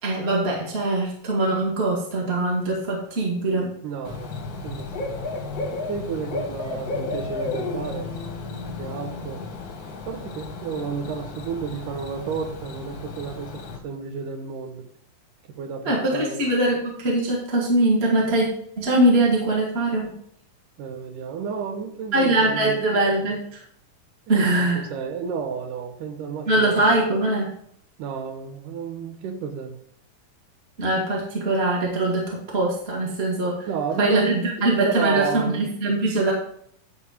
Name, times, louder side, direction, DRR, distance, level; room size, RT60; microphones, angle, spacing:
voice 1, 0.0-3.7 15.8-18.5 18.8-20.1 22.1-23.6 24.3-24.8 26.5-27.5 30.8-33.7 34.0-36.3, right 2 dB, 25° right, -3 dB, 1.6 m, -22 dB
voice 2, 3.8-4.4 4.6-4.9 5.9-8.1 8.7-9.4 10.1-14.9 15.6-16.4 20.8-22.7 24.3-24.5 24.9-27.0 28.0-29.8 33.7-35.7, right 6 dB, 75° right, 5 dB, 2.6 m, -31 dB
Bird / Cricket, 4.0-13.8, left 3 dB, 50° left, 1.5 m, -33 dB
10.5 x 4.8 x 5.0 m, 0.65 s
omnidirectional pair, 3.9 m